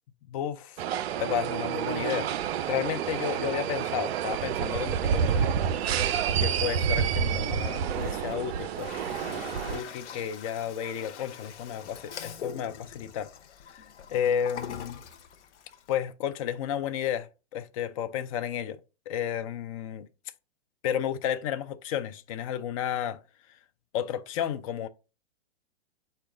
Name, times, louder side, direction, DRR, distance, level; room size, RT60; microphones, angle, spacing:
voice 1, 0.3-0.8 1.2-2.3 2.6-5.5 6.4-8.9 9.7-13.3 13.7-15.0 15.9-17.3 17.5-18.8 19.1-20.1 20.8-23.2 23.9-24.9, left 9 dB, 35° left, 0.4 m, -32 dB
sound 1, 0.8-9.8, right 8 dB, 65° right, 0.5 m, -29 dB
Toilet flush, 7.8-15.9, left 8 dB, 85° left, 0.7 m, -43 dB
4.7 x 2.2 x 4.7 m
hypercardioid pair, 135°, 34 cm